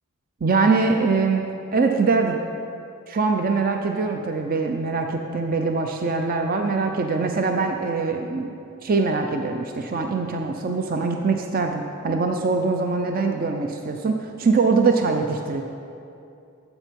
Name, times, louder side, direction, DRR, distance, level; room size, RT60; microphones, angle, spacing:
voice 1, 0.4-2.4 3.1-8.5 8.8-15.6, right 4 dB, 40° right, 4 dB, 0.5 m, -23 dB
12.0 x 8.1 x 5.2 m, 2.6 s
head